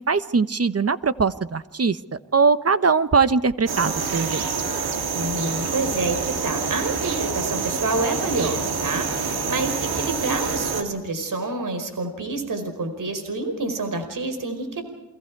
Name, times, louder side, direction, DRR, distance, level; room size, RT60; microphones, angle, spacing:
voice 1, 0.1-2.0 2.3-4.4, right 5 dB, 40° right, 13 dB, 1.3 m, -21 dB
sound 1, 3.7-10.8, right 5 dB, 90° right, 2.6 m, -27 dB
voice 2, 5.1-14.8, right 2 dB, 60° right, 7 dB, 4.9 m, -28 dB
29.5 x 22.5 x 4.8 m, 1.0 s
cardioid pair, 50°, 36 cm